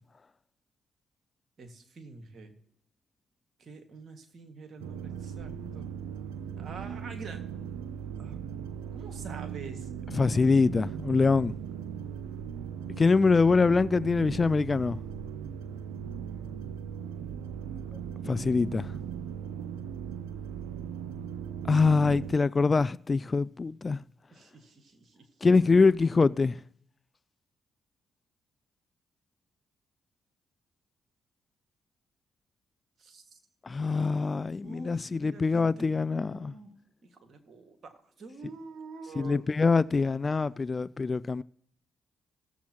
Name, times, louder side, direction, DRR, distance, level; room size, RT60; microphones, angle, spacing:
voice 1, 1.6-2.6 3.6-5.9 6.6-7.4 8.2-8.4 8.9-9.9 24.3-25.3 33.0-33.4 34.6-36.7 37.0-39.4, right 4 dB, 55° right, 1.8 m, -46 dB
sound 1, 4.8-22.3, right 8 dB, 90° right, 0.5 m, -38 dB
voice 2, 10.2-11.5 13.0-15.0 18.2-18.9 21.7-24.0 25.4-26.6 33.7-36.5 39.2-41.4, left 4 dB, 35° left, 0.3 m, -24 dB
17.5 x 7.1 x 2.9 m
hypercardioid pair, 50°, 0 cm